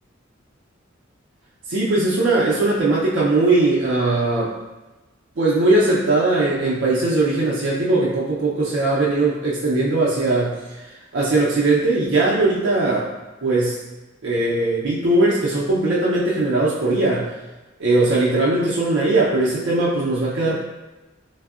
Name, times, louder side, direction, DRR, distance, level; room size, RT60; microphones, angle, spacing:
voice 1, 1.7-4.5 5.4-13.1 13.4-13.8 14.2-17.3 17.8-20.6, right 2 dB, 70° right, -6 dB, 0.5 m, -19 dB
3.4 x 2.0 x 2.3 m, 1.1 s
head